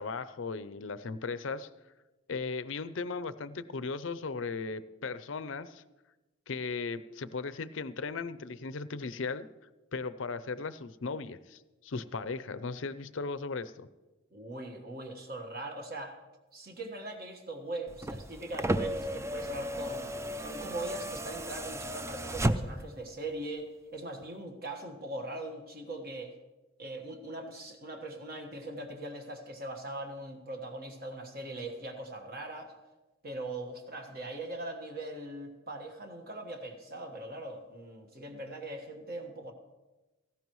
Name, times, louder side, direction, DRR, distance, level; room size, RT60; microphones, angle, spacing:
voice 1, 0.0-1.7 2.3-5.8 6.5-9.5 9.9-13.9, left 4 dB, 70° left, 14 dB, 0.6 m, -37 dB
voice 2, 14.3-16.2 16.5-20.1 20.4-26.3 26.8-32.7 33.2-39.5, right 1 dB, 50° right, 3 dB, 1.5 m, -41 dB
sound 1, 17.9-23.0 24.2-24.3, right 1 dB, 15° right, 0.4 m, -34 dB
18.0 x 15.0 x 3.1 m, 1.1 s
head